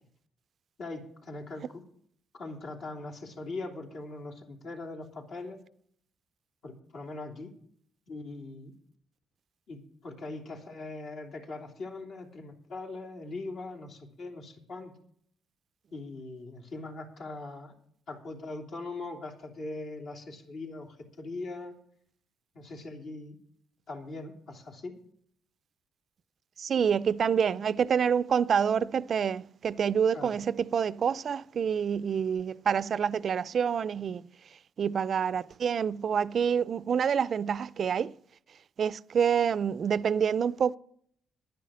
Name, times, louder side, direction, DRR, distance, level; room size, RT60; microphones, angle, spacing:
voice 1, 0.8-1.8 2.3-5.6 6.6-7.5 8.1-8.7 9.7-14.9 15.9-17.7 18.1-21.7 22.5-23.4 23.9-24.9 30.1-30.4, left 2 dB, 65° left, 3.0 m, -41 dB
voice 2, 26.6-34.2 34.8-38.1 38.8-40.8, right 7 dB, 55° right, 0.4 m, -27 dB
11.0 x 10.5 x 6.3 m
cardioid pair, 90°, 0 cm